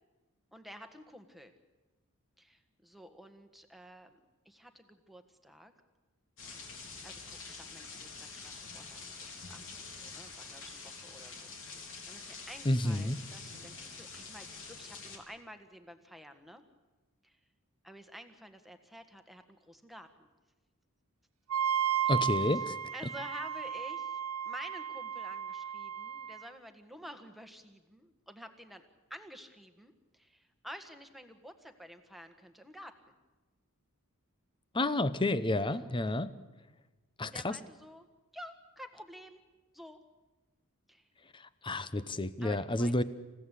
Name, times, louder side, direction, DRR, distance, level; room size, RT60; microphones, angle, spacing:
voice 1, 0.5-1.5 2.4-4.2 4.4-5.7 7.0-16.6 17.2-17.4 17.8-20.3 22.0-22.3 22.9-32.9 35.5-35.9 37.2-38.1 38.3-39.4 39.7-40.0 40.9-41.1 42.4-43.0, equal, ahead, 6 dB, 1.6 m, -51 dB
sound 1, 6.4-15.2, left 4 dB, 60° left, 3.5 m, -46 dB
voice 2, 12.6-13.2 22.1-22.8 34.7-36.3 37.2-37.6 41.3-43.0, left 1 dB, 20° left, 14 dB, 0.9 m, -30 dB
Wind instrument woodwind instrument, 21.5-26.5, right 9 dB, 90° right, 1.7 m, -34 dB
28.0 x 16.0 x 8.4 m, 1.2 s
head